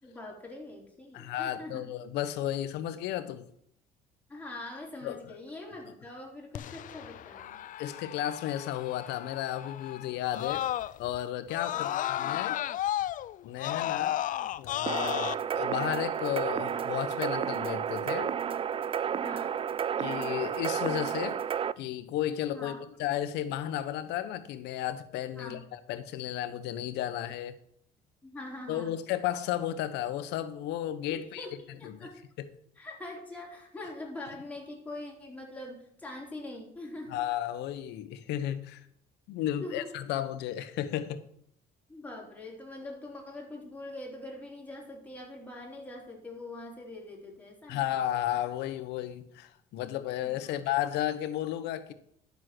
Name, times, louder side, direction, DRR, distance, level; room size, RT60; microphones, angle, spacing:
voice 1, 0.0-1.8 4.3-7.6 11.7-12.4 19.2-19.6 22.5-22.8 25.4-25.6 28.2-28.9 31.1-31.5 31.8-32.2 32.8-37.2 39.4-39.9 41.9-47.9 50.2-50.6, left 2 dB, 10° left, 4.1 m, -43 dB
voice 2, 1.1-3.4 5.0-5.2 7.8-10.7 11.0-12.6 13.4-14.2 14.6-18.3 20.0-21.4 21.8-22.7 23.0-27.6 28.7-32.1 32.4-32.5 37.1-38.8 39.3-41.2 47.7-51.9, left 12 dB, 85° left, 1.1 m, -33 dB
Screaming, 6.5-11.2 11.5-15.3, left 12 dB, 50° left, 0.4 m, -34 dB
sound 1, 14.9-21.7, right 8 dB, 35° right, 0.4 m, -31 dB
11.5 x 7.4 x 6.1 m
cardioid pair, 110°, 17 cm